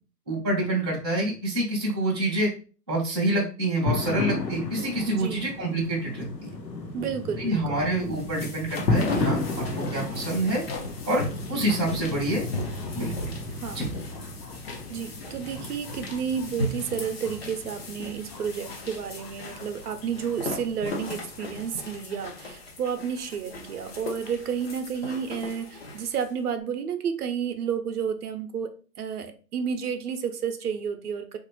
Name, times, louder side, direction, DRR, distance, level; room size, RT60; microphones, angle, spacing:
voice 1, 0.3-2.5 2.9-6.5 7.4-9.7 9.9-10.6 11.1-12.5 12.9-13.3 13.7-13.8, right 1 dB, 15° right, -9 dB, 0.4 m, -27 dB
sound 1, 3.9-21.9, left 3 dB, 85° left, 1.0 m, -34 dB
voice 2, 5.0-5.5 6.9-7.8 13.5-13.9 14.9-31.4, right 7 dB, 65° right, 8 dB, 0.6 m, -31 dB
sound 2, 7.9-26.3, left 1 dB, 40° left, 0.5 m, -37 dB
3.2 x 2.5 x 3.0 m, 0.37 s
hypercardioid pair, 150°, 49 cm